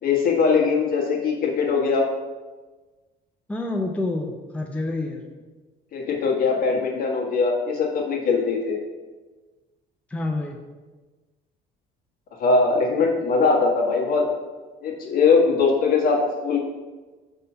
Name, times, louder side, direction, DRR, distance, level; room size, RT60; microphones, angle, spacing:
voice 1, 0.0-2.1 5.9-8.8 12.4-14.2 14.8-16.6, left 4 dB, 60° left, -2 dB, 1.5 m, -21 dB
voice 2, 3.5-5.3 10.1-10.6, left 2 dB, 10° left, 2 dB, 0.5 m, -28 dB
5.5 x 3.6 x 5.5 m, 1.3 s
cardioid pair, 110°, 17 cm